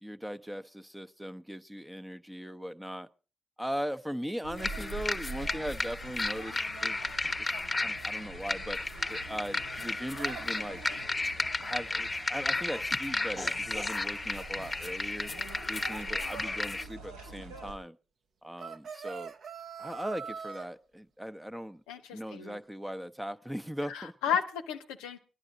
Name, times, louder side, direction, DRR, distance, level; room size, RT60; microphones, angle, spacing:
voice 1, 0.0-3.1 3.6-7.0 7.5-8.8 9.1-10.8 11.6-15.3 15.7-18.0 18.4-19.3 19.8-21.8 22.1-24.1, equal, 5° right, 0.7 m, -39 dB
sound 1, 4.4-17.7, right 3 dB, 90° right, 3.1 m, -45 dB
sound 2, 4.6-16.9, left 3 dB, 30° left, 0.9 m, -34 dB
sound 3, 18.6-20.7, right 6 dB, 55° right, 0.8 m, -42 dB
voice 2, 21.9-22.6 23.9-25.2, left 8 dB, 80° left, 0.7 m, -33 dB
20.5 x 11.0 x 3.9 m
hypercardioid pair, 40°, 0 cm